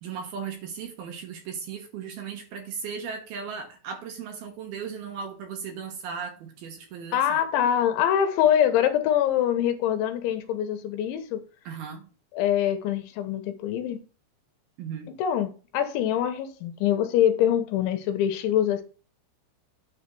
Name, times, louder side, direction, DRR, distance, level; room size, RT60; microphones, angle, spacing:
voice 1, 0.0-7.4 11.7-12.1 14.8-15.1, right 6 dB, 70° right, 2.5 m, -37 dB
voice 2, 7.1-11.5 12.3-14.0 15.2-18.8, left 10 dB, 80° left, 3.1 m, -24 dB
9.8 x 4.1 x 6.8 m
omnidirectional pair, 5.6 m